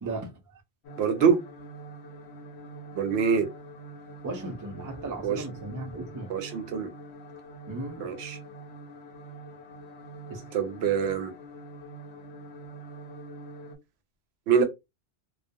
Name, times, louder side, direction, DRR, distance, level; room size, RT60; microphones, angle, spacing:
voice 1, 0.0-0.6 4.2-6.3 7.7-8.1 10.3-10.4, right 2 dB, 30° right, 0.3 m, -36 dB
sound 1, 0.8-13.8, right 1 dB, 80° left, 0.9 m, -45 dB
voice 2, 1.0-1.4 2.9-3.5 5.2-5.4 6.3-6.9 8.0-8.4 10.5-11.3 14.5-14.6, right 6 dB, 75° right, 0.8 m, -24 dB
2.3 x 2.0 x 2.6 m
omnidirectional pair, 1.1 m